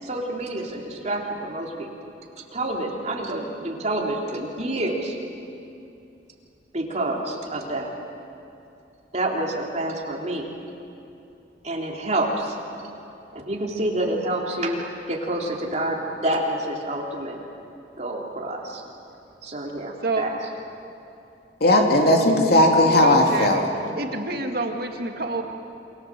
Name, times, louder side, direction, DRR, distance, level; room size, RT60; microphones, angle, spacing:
voice 1, 0.0-1.9 2.5-5.2 6.7-7.9 9.1-10.5 11.6-12.6 13.3-14.8 15.1-17.4 18.0-18.8 19.4-20.3, right 1 dB, 40° right, -1 dB, 3.7 m, -28 dB
voice 2, 21.6-23.7, left 1 dB, 60° left, 2 dB, 3.2 m, -17 dB
voice 3, 22.8-23.6 24.0-25.4, right 2 dB, 55° right, 3 dB, 2.3 m, -28 dB
28.0 x 25.5 x 7.7 m, 2.7 s
head